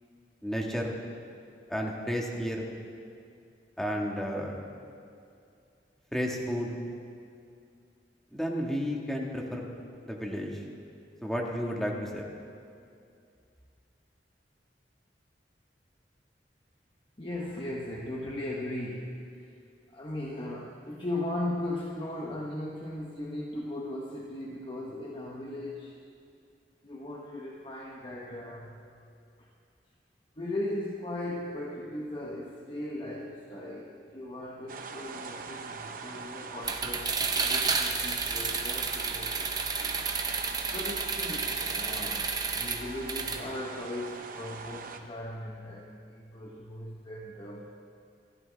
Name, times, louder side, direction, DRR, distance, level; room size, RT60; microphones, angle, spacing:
voice 1, 0.4-0.9 1.7-2.6 3.8-4.7 6.1-6.8 8.3-9.7 10.0-10.6 11.2-12.3, equal, 5° left, -1 dB, 1.8 m, -32 dB
voice 2, 17.2-19.5 19.9-26.0 26.8-28.9 29.4-29.5 30.4-39.9 40.7-47.7, left 1 dB, 30° left, -2 dB, 1.1 m, -38 dB
sound 1, 34.7-45.0, right 4 dB, 50° right, 1.0 m, -42 dB
sound 2, 36.6-43.4, right 4 dB, 25° right, 0.9 m, -31 dB
27.0 x 12.5 x 3.5 m, 2.4 s
head